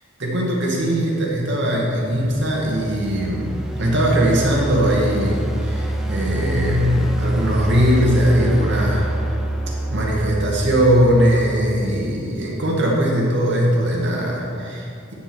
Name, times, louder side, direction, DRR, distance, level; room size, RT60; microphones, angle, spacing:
voice 1, 0.2-9.1 9.9-15.1, equal, 60° right, -3 dB, 2.4 m, -20 dB
sound 1, 2.2-12.2, right 1 dB, 5° right, 0.8 m, -26 dB
9.6 x 7.8 x 6.4 m, 2.6 s
head